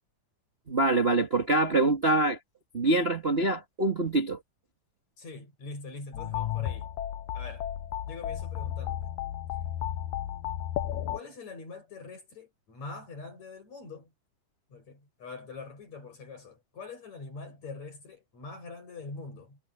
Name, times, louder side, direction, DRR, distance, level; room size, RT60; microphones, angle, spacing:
voice 1, 0.7-2.4 2.7-4.4, right 2 dB, 25° right, 1.6 m, -25 dB
voice 2, 5.2-6.9 7.3-7.7 8.1-9.1 11.1-14.1 14.7-19.6, left 3 dB, 55° left, 9.2 m, -44 dB
sound 1, 6.1-11.2, left 11 dB, 75° left, 2.2 m, -33 dB
omnidirectional pair, 3.7 m